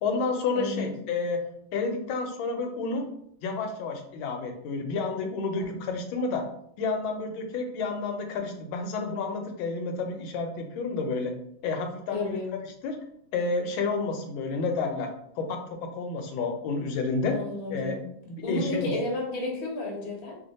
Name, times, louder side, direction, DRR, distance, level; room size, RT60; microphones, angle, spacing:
voice 1, 0.0-1.4 1.7-3.1 3.4-6.4 6.8-11.3 11.6-12.4 12.8-13.0 13.3-15.1 15.4-17.4 17.7-18.0 18.3-18.9, left 4 dB, 80° left, 4 dB, 1.3 m, -30 dB
voice 2, 0.5-0.9 5.6-5.7 12.1-12.5 17.3-18.1 18.4-20.4, left 2 dB, 45° left, -2 dB, 0.7 m, -32 dB
3.2 x 2.1 x 3.9 m, 0.71 s
omnidirectional pair, 2.2 m